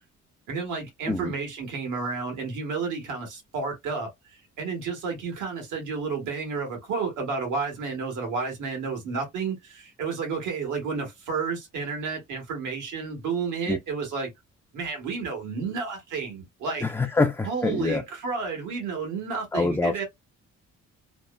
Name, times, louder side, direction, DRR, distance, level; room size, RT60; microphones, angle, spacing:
voice 1, 0.5-14.3 14.7-16.9 17.4-20.0, right 5 dB, 85° right, 1.6 m, -31 dB
voice 2, 16.8-18.0 19.5-20.0, left 3 dB, 10° left, 0.4 m, -25 dB
3.3 x 2.1 x 2.3 m
cardioid pair, 90°, 30 cm